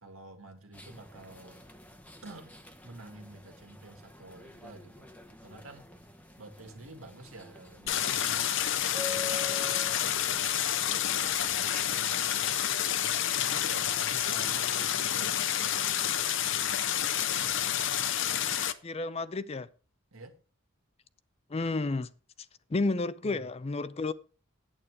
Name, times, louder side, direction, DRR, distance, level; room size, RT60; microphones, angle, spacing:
voice 1, 0.0-1.7 2.2-2.5 2.8-5.1 5.4-5.9 6.4-10.6 11.1-12.4 13.0-16.1 16.4-17.1 20.1-20.4 23.2-23.5, right 2 dB, 80° right, 2.0 m, -50 dB
sound 1, 0.7-11.8, left 4 dB, 5° left, 0.9 m, -46 dB
Stream, 7.9-18.7, left 10 dB, 65° left, 0.7 m, -29 dB
voice 2, 18.8-19.7 21.5-22.1 22.7-24.1, left 3 dB, 30° left, 0.5 m, -31 dB
8.9 x 8.6 x 4.7 m
head